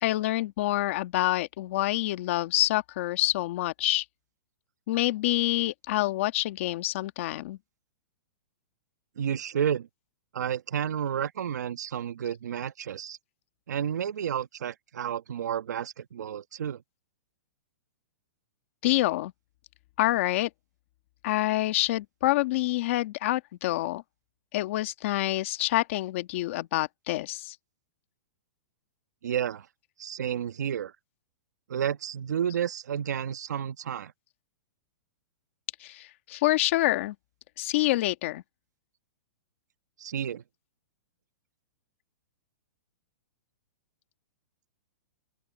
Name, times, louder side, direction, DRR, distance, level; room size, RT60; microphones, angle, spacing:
voice 1, 0.0-4.0 4.9-7.6 18.8-19.3 20.0-20.5 21.2-24.0 24.5-27.5 35.8-37.1 37.6-38.4, left 17 dB, 45° left, 1.5 m, -27 dB
voice 2, 9.2-9.9 10.3-13.2 13.7-16.8 29.2-29.7 30.0-30.9 31.7-34.1 40.0-40.4, right 9 dB, 80° right, 1.3 m, -31 dB
open air
hypercardioid pair, 160°, 9 cm